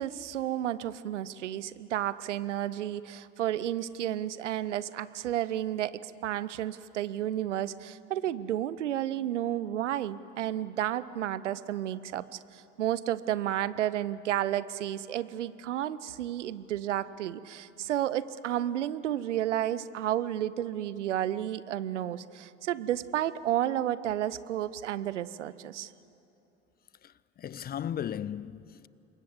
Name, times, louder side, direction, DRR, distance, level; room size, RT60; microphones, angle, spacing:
voice 1, 0.0-25.9, right 12 dB, 75° right, 0.8 m, -32 dB
voice 2, 27.0-28.9, left 9 dB, 25° left, 0.5 m, -36 dB
27.0 x 22.0 x 8.1 m
figure-of-eight pair, 60°, 36 cm